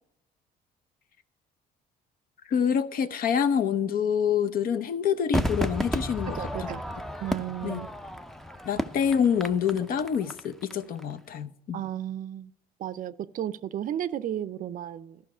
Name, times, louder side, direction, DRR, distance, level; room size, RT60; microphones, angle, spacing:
voice 1, 2.5-6.7 7.6-7.8 8.6-11.8, left 7 dB, 55° left, 0.8 m, -26 dB
Crowd / Fireworks, 5.3-10.7 11.0-11.1, equal, ahead, 0.5 m, -32 dB
voice 2, 6.3-6.8 7.2-7.9 11.7-12.5 12.8-15.2, right 11 dB, 55° right, 0.5 m, -33 dB
14.0 x 5.8 x 4.9 m
cardioid pair, 110°, 17 cm